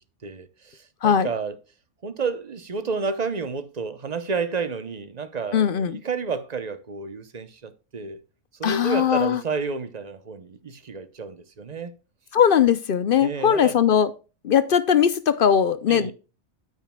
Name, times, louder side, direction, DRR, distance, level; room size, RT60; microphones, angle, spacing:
voice 1, 0.2-1.6 2.0-8.2 8.6-11.9 13.2-13.8 15.9-16.1, right 5 dB, 40° right, 0.8 m, -31 dB
voice 2, 5.5-6.0 8.6-9.4 12.3-14.1 14.4-16.1, left 8 dB, 55° left, 0.7 m, -20 dB
9.2 x 9.1 x 2.2 m
omnidirectional pair, 1.3 m